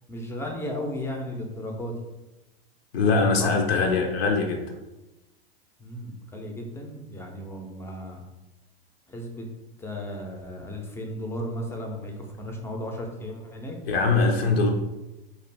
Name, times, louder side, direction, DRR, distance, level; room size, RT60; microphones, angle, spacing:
voice 1, 0.1-1.9 3.4-3.5 5.8-8.2 9.1-9.4 9.8-13.8, left 1 dB, 10° left, 1 dB, 0.4 m, -35 dB
voice 2, 2.9-4.6 13.9-14.7, left 4 dB, 80° left, 3 dB, 0.6 m, -22 dB
2.5 x 2.4 x 3.3 m, 1.0 s
hypercardioid pair, 110°, 30 cm